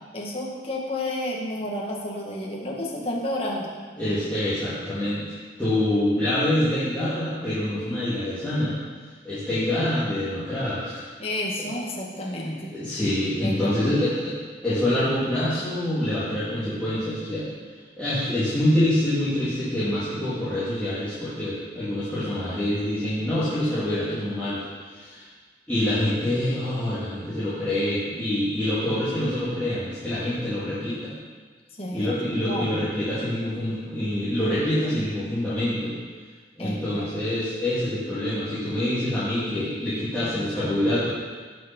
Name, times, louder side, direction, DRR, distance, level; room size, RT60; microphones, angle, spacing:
voice 1, 0.1-3.7 11.2-12.7 13.4-14.0 31.8-32.1 32.5-32.8 36.6-37.1, left 1 dB, 30° left, -3 dB, 2.0 m, -31 dB
voice 2, 4.0-8.8 9.2-11.0 11.6-11.7 12.7-14.4 14.6-17.5 18.0-25.3 25.7-31.2 31.9-35.9 36.6-41.1, left 1 dB, 10° left, -14 dB, 3.2 m, -26 dB
18.0 x 6.2 x 5.5 m, 1.5 s
head